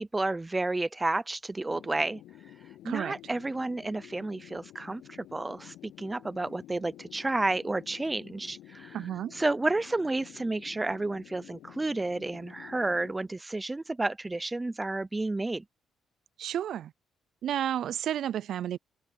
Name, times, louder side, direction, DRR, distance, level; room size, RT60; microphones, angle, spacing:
voice 1, 0.0-2.2 2.8-9.0 9.3-15.6, right 2 dB, 15° right, 0.6 m, -31 dB
sound 1, 1.7-13.1, left 14 dB, 90° left, 7.5 m, -51 dB
voice 2, 8.9-9.3 16.4-16.9 17.4-18.8, right 10 dB, 70° right, 0.4 m, -31 dB
open air
cardioid pair, 90°, 0 cm